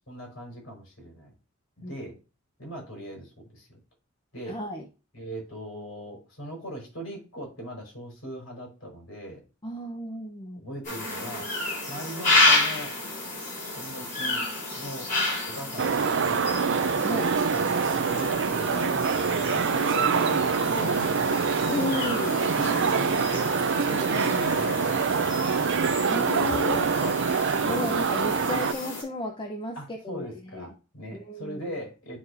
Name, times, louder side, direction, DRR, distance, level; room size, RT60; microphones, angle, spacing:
voice 1, 0.1-1.3 1.8-2.2 2.6-3.8 4.3-4.6 5.1-9.4 10.6-11.5 11.9-12.9 13.7-14.5 14.7-15.1 15.5-16.5 17.1-17.2 17.5-21.5 22.6-25.5 27.0-27.2 29.7-32.2, equal, 70° left, -1 dB, 4.5 m, -39 dB
voice 2, 4.5-4.8 9.6-10.6 17.0-17.3 21.7-22.4 26.1-26.9 27.6-30.7 31.1-31.7, left 2 dB, 25° left, 2 dB, 0.8 m, -33 dB
sound 1, 10.8-29.0, left 2 dB, 40° left, 4.5 m, -31 dB
sound 2, 15.8-28.7, right 5 dB, 60° right, 0.5 m, -25 dB
12.0 x 4.1 x 2.7 m, 0.32 s
head